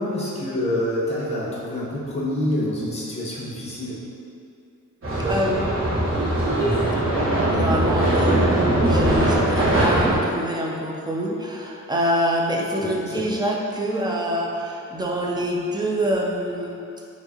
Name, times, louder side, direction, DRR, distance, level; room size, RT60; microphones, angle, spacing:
voice 1, 0.0-4.0 12.8-13.3, left 1 dB, 20° left, -7 dB, 1.0 m, -27 dB
sound 1, 5.0-10.2, right 1 dB, 45° right, 1.2 m, -20 dB
voice 2, 5.3-5.7 7.4-16.8, equal, 15° right, -2 dB, 0.4 m, -26 dB
4.6 x 2.8 x 2.8 m, 2.5 s
wide cardioid pair, 120°, 30 cm